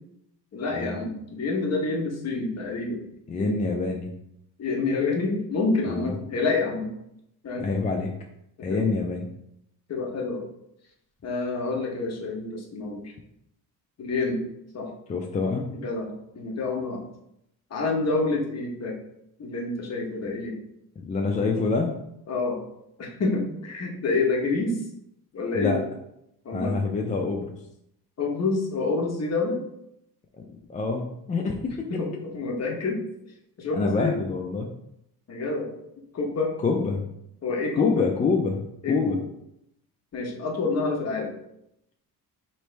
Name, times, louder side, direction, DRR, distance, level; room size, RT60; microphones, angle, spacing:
voice 1, 0.5-3.0 3.4-3.5 4.6-6.9 7.4-7.7 8.7-8.9 9.9-10.4 11.2-13.1 14.0-14.4 14.7-14.9 15.7-17.0 17.7-19.0 19.4-20.6 22.3-22.6 23.0-24.7 25.3-25.8 26.4-26.8 28.2-29.6 31.9-33.0 33.6-34.1 35.3-35.7 36.1-36.5 37.4-38.1 38.8-39.2 40.1-41.3, left 3 dB, 40° left, 0 dB, 1.0 m, -28 dB
voice 2, 3.3-4.1 5.9-6.2 7.6-8.1 8.6-9.3 15.1-15.7 21.0-21.9 25.5-25.8 26.5-27.5 30.4-31.9 33.7-34.7 36.6-37.1 37.8-39.2, left 4 dB, 20° left, 1 dB, 0.3 m, -26 dB
3.2 x 3.0 x 4.4 m, 0.78 s
cardioid pair, 130°, 39 cm